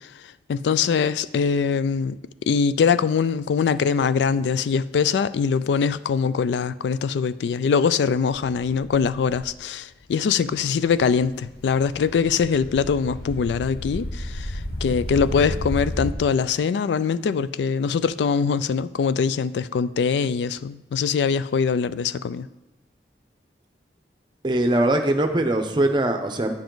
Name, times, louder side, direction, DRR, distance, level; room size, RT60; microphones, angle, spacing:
voice 1, 0.5-2.2 2.5-22.5, left 6 dB, 80° left, 0.3 m, -23 dB
sound 1, 8.9-9.5 10.1-10.2 10.5-16.1, left 1 dB, 60° left, 0.9 m, -33 dB
voice 2, 24.4-26.5, right 1 dB, 25° right, 0.7 m, -21 dB
9.2 x 7.0 x 3.9 m
head